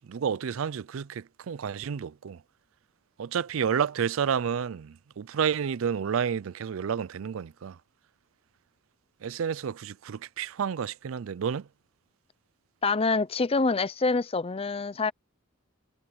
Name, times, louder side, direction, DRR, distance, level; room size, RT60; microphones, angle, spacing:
voice 1, 0.1-2.4 3.2-7.8 9.2-11.6, right 7 dB, 70° right, 0.4 m, -30 dB
voice 2, 12.8-15.1, left 3 dB, 30° left, 0.6 m, -26 dB
head